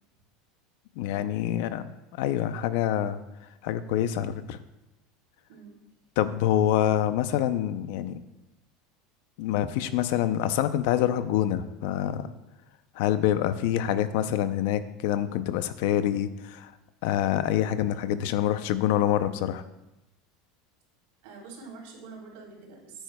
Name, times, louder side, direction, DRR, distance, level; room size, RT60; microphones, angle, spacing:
voice 1, 1.0-1.8 2.2-3.2 3.6-4.6 6.2-8.2 9.4-12.3 13.0-16.7 17.0-19.6, left 11 dB, 60° left, 12 dB, 0.5 m, -26 dB
voice 2, 5.5-5.8 21.2-23.0, right 4 dB, 70° right, -1 dB, 3.5 m, -45 dB
14.0 x 8.9 x 2.2 m, 0.95 s
supercardioid pair, 170°, 0 cm